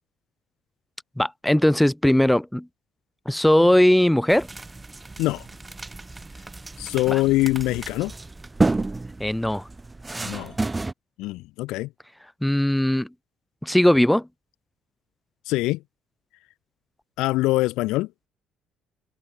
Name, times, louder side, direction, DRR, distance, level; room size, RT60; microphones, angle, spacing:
voice 1, 1.2-2.7 3.2-4.5 7.1-7.2 9.2-9.7 12.4-13.1 13.6-14.3, left 1 dB, 5° left, 5.1 m, -19 dB
sound 1, 4.3-10.9, right 2 dB, 15° right, 4.9 m, -30 dB
voice 2, 6.8-8.1 10.2-10.5 11.2-11.9 15.5-15.8 17.2-18.1, left 19 dB, 90° left, 4.5 m, -23 dB
cardioid pair, 130°, 0 cm